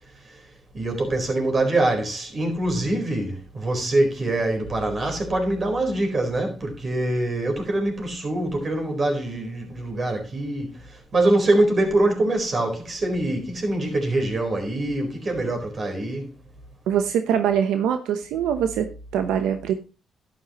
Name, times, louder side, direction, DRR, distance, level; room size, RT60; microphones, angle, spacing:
voice 1, 0.7-10.7 11.1-16.3, right 2 dB, 40° right, 4.3 m, -24 dB
voice 2, 16.9-19.7, right 9 dB, 90° right, 0.9 m, -23 dB
11.5 x 9.6 x 3.0 m
cardioid pair, 90°, 0 cm